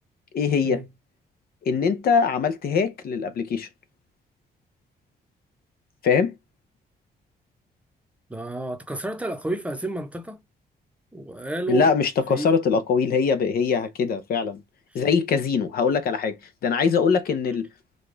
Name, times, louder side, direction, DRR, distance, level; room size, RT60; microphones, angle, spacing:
voice 1, 0.3-0.8 1.7-3.7 6.0-6.3 11.7-14.6 14.9-16.4 16.6-17.7, left 5 dB, 65° left, 0.7 m, -22 dB
voice 2, 8.3-10.4 11.1-11.9 12.3-12.5 14.9-15.0, right 2 dB, 10° right, 0.7 m, -30 dB
5.1 x 2.3 x 3.8 m
cardioid pair, 125°, 17 cm